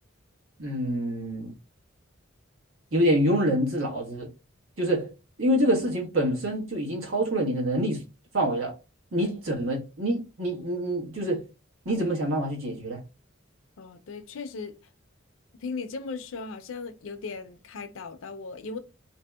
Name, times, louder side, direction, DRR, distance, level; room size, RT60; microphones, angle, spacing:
voice 1, 0.6-1.5 2.9-4.3 4.8-5.1 5.4-8.0 8.3-8.8 9.1-11.4 11.8-13.0, equal, 80° right, 1.2 m, -26 dB
voice 2, 13.8-14.8 15.6-18.8, left 4 dB, 75° left, 0.5 m, -37 dB
2.8 x 2.7 x 2.3 m
head